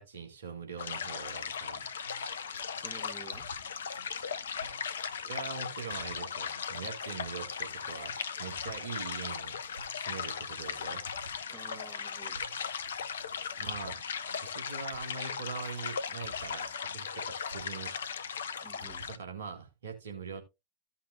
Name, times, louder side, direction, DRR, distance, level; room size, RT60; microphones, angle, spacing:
voice 1, 0.0-1.9 5.2-9.6 9.9-11.5 13.6-14.0 14.4-18.0 19.2-20.4, right 5 dB, 65° right, 2.1 m, -42 dB
sound 1, 0.8-19.2, left 7 dB, 65° left, 0.7 m, -38 dB
sound 2, 2.0-19.4, right 1 dB, 90° right, 2.3 m, -54 dB
voice 2, 2.8-3.5 11.5-12.4 18.6-19.1, right 4 dB, 15° right, 1.1 m, -50 dB
15.0 x 5.7 x 2.5 m
figure-of-eight pair, 90°, 0 cm